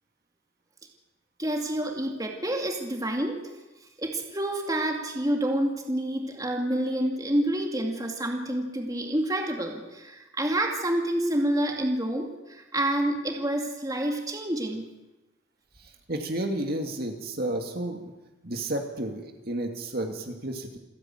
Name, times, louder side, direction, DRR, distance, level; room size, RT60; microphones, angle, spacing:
voice 1, 1.4-3.4 4.0-14.9, right 1 dB, 20° right, 2 dB, 2.4 m, -28 dB
voice 2, 16.1-18.0 18.4-20.8, right 1 dB, 50° right, 3 dB, 2.5 m, -31 dB
28.0 x 10.5 x 9.1 m, 1.1 s
head